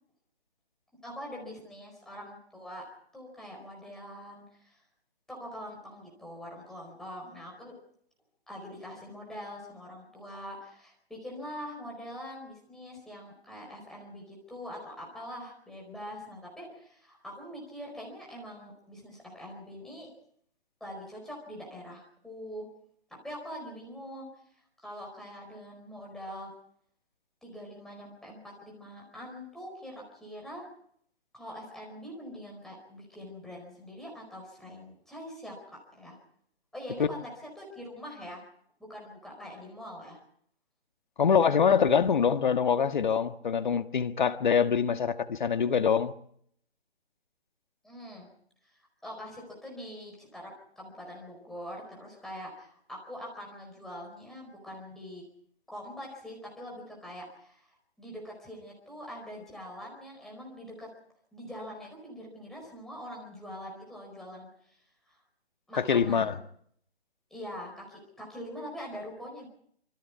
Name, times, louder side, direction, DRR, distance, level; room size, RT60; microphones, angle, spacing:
voice 1, 1.0-2.8 3.1-4.8 5.3-7.7 8.5-20.1 20.8-22.7 23.2-24.3 24.8-26.5 27.4-30.7 31.3-36.2 36.7-38.4 38.9-40.2 47.8-48.3 48.6-55.2 55.7-60.9 61.3-64.8 65.1-65.2 65.7-66.4 67.3-69.5, equal, ahead, -2 dB, 4.6 m, -43 dB
voice 2, 41.2-46.1 65.8-66.3, left 7 dB, 45° left, 9 dB, 1.7 m, -24 dB
26.0 x 24.5 x 4.7 m, 0.66 s
figure-of-eight pair, 160°, 32 cm